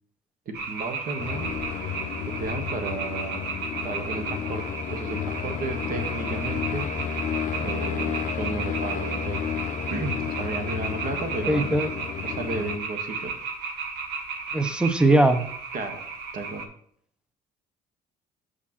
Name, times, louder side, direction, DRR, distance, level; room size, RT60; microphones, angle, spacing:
voice 1, 0.4-3.5 3.8-7.2 7.6-9.5 9.9-11.7 12.2-13.3 14.5-14.7 15.7-16.0 16.3-16.6, right 3 dB, 55° right, 6 dB, 1.4 m, -34 dB
sound 1, 0.5-16.6, right 5 dB, 75° right, 1.2 m, -34 dB
sound 2, 1.2-12.8, left 8 dB, 50° left, 0.6 m, -32 dB
voice 2, 11.5-11.9 14.5-15.5, right 2 dB, 5° right, 10 dB, 0.7 m, -20 dB
7.3 x 6.4 x 3.0 m, 0.63 s
cardioid pair, 110°, 17 cm